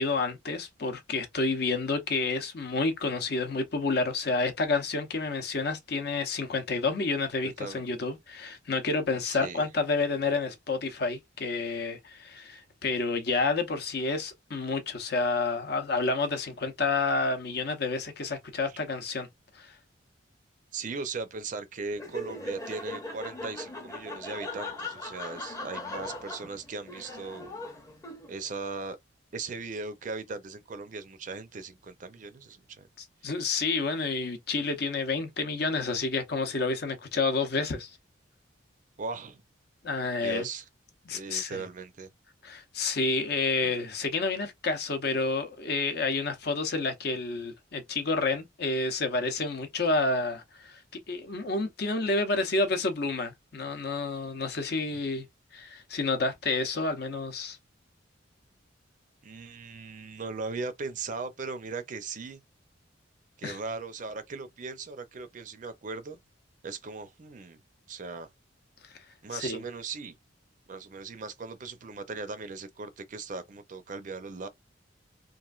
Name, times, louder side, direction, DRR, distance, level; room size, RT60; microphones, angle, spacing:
voice 1, 0.0-19.3 19.5-19.7 33.2-37.9 39.8-40.5 41.1-41.6 42.4-50.8 51.1-55.3 55.5-57.6 63.4-63.6 69.3-69.6, left 3 dB, 55° left, 0.7 m, -29 dB
voice 2, 7.4-7.8 9.2-9.7 18.7-18.8 20.7-27.4 28.3-29.0 29.3-32.9 39.0-39.4 40.2-40.6 41.1-42.1 43.6-43.7 59.2-62.4 63.4-66.2 66.6-67.6 67.9-68.3 69.2-70.1 70.7-74.5, right 4 dB, 40° right, 0.4 m, -38 dB
Laughter, 21.9-28.5, left 2 dB, 15° left, 0.7 m, -39 dB
3.0 x 2.5 x 2.4 m
head